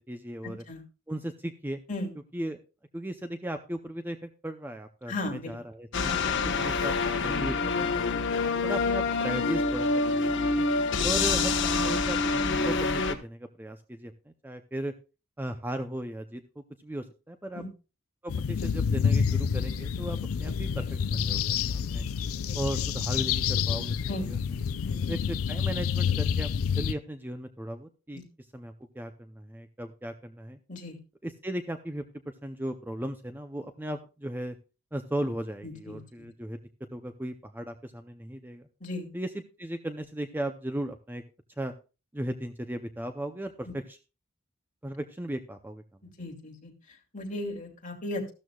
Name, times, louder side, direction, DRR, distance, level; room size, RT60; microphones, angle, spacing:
voice 1, 0.1-0.6 1.1-1.8 2.3-2.6 2.9-6.1 6.6-8.3 8.6-10.6 11.0-14.9 15.4-17.6 18.2-22.1 22.5-24.4 25.1-26.5 26.8-28.2 28.5-30.6 31.2-34.6 34.9-36.6 36.9-38.7 39.1-39.3 39.6-41.2 41.6-41.7 42.1-44.0 44.8-45.8, right 1 dB, 10° right, 7 dB, 0.6 m, -36 dB
voice 2, 5.1-5.5 5.9-6.3 8.3-8.6 10.4-10.8 17.5-17.7 22.5-22.6 24.1-24.4 24.8-25.0 28.1-28.2 30.7-31.0 35.6-36.0 38.8-39.1 43.6-43.7 46.2-48.3, left 2 dB, 40° left, 1 dB, 2.7 m, -37 dB
sound 1, 5.9-13.1, left 4 dB, 60° left, 1.2 m, -26 dB
sound 2, 18.3-26.9, left 7 dB, 85° left, 0.4 m, -28 dB
14.0 x 12.5 x 2.3 m, 0.32 s
head